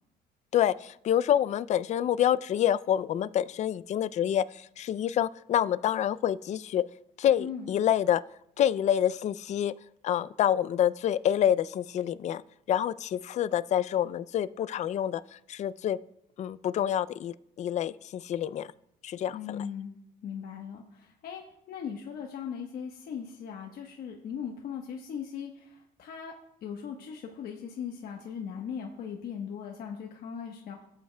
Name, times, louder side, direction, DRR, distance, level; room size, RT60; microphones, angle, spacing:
voice 1, 0.5-6.8 7.2-8.2 8.6-9.7 10.0-12.4 12.7-15.2 15.5-16.0 16.4-18.7 19.0-19.4, left 10 dB, 45° left, 17 dB, 0.4 m, -27 dB
voice 2, 7.4-7.8 19.3-21.4 21.7-26.3 26.6-30.8, left 7 dB, 65° left, 1 dB, 1.1 m, -39 dB
17.0 x 8.1 x 2.2 m, 0.76 s
cardioid pair, 110°, 17 cm